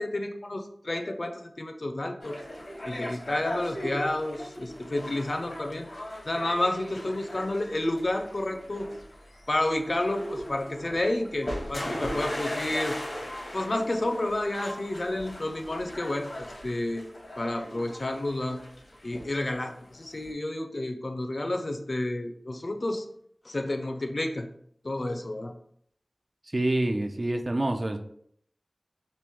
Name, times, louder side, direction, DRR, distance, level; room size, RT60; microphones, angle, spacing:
voice 1, 0.0-2.4 2.8-5.9 6.3-8.9 9.5-13.0 13.5-17.0 17.4-18.6 19.0-23.0 23.5-24.5 24.8-25.5, left 1 dB, 55° left, 5 dB, 0.4 m, -30 dB
sound 1, 2.2-20.3, equal, 85° left, 0.9 m, -39 dB
voice 2, 26.5-28.0, right 1 dB, 50° right, 5 dB, 0.4 m, -27 dB
3.0 x 2.5 x 3.5 m, 0.66 s
wide cardioid pair, 55°, 0 cm